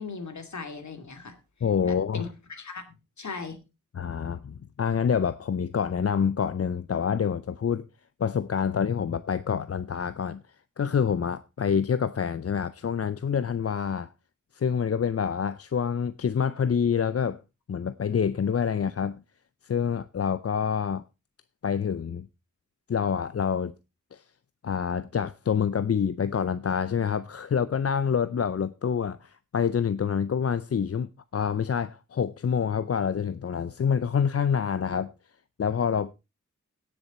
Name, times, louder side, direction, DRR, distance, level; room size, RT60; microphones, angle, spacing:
voice 1, 0.0-1.4 1.8-2.8 3.2-3.6, left 4 dB, 65° left, 2.4 m, -38 dB
voice 2, 1.6-2.3 3.9-7.9 8.2-10.4 10.8-14.1 14.5-17.4 17.7-19.2 19.6-21.0 21.6-22.3 22.9-23.7 24.1-24.2 24.6-35.1 35.6-36.1, left 7 dB, 50° left, 0.5 m, -27 dB
17.0 x 6.9 x 4.2 m
wide cardioid pair, 105°, 31 cm